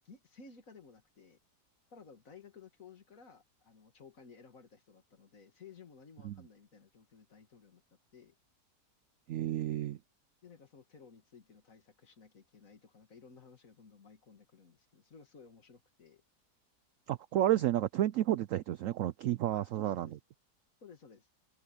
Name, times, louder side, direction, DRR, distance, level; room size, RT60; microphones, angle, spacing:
voice 1, 0.0-1.4 1.9-7.8 8.1-8.4 10.4-16.2 19.5-20.2 20.8-21.3, left 5 dB, 55° left, 2.2 m, -56 dB
voice 2, 9.3-10.0 17.1-20.1, right 13 dB, 70° right, 0.7 m, -31 dB
omnidirectional pair, 1.8 m